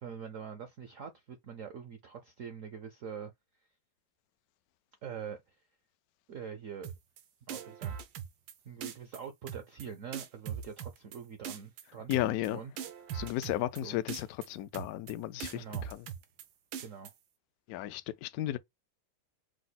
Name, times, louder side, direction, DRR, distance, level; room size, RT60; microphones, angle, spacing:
voice 1, 0.0-3.3 5.0-5.4 6.3-6.9 7.5-8.0 8.6-12.1 12.4-12.7 13.8-14.0 15.5-15.9 16.8-17.1, right 7 dB, 70° right, 0.7 m, -44 dB
sound 1, 6.8-7.2 7.5-8.5 8.8-9.2 9.5-9.9 10.1-11.2 11.4-11.8 12.1-12.5 12.8-13.8 14.1-14.5 14.7-15.1 15.4-16.4 16.7-17.1, right 8 dB, 85° right, 1.6 m, -40 dB
voice 2, 12.1-12.6 13.1-16.1 17.7-18.6, left 14 dB, 80° left, 0.8 m, -34 dB
5.0 x 2.1 x 4.0 m
omnidirectional pair, 2.1 m